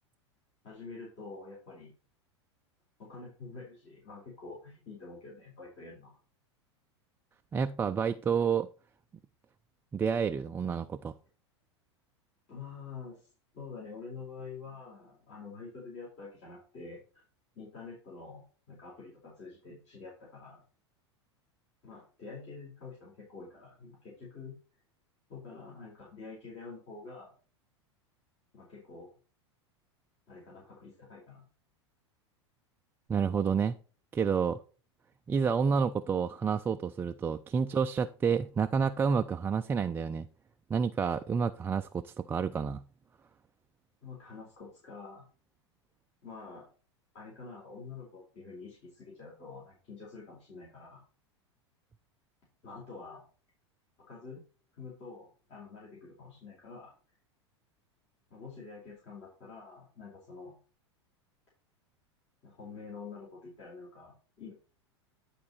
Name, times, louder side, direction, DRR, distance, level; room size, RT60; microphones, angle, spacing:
voice 1, 0.6-1.9 3.0-6.1 12.5-13.3 13.5-17.0 17.6-20.6 21.8-24.6 25.3-27.3 28.5-29.1 30.3-31.4 44.0-45.3 46.2-46.7 47.1-51.0 52.6-53.2 54.0-54.4 54.8-56.9 58.3-60.6 62.4-64.1 64.4-64.5, left 4 dB, 45° left, 3.9 m, -47 dB
voice 2, 7.5-8.7 9.9-11.1 33.1-33.8 34.1-34.6 35.3-40.3 40.7-42.8, right 6 dB, 15° right, 0.3 m, -29 dB
10.5 x 4.6 x 4.2 m
figure-of-eight pair, 85°, 15 cm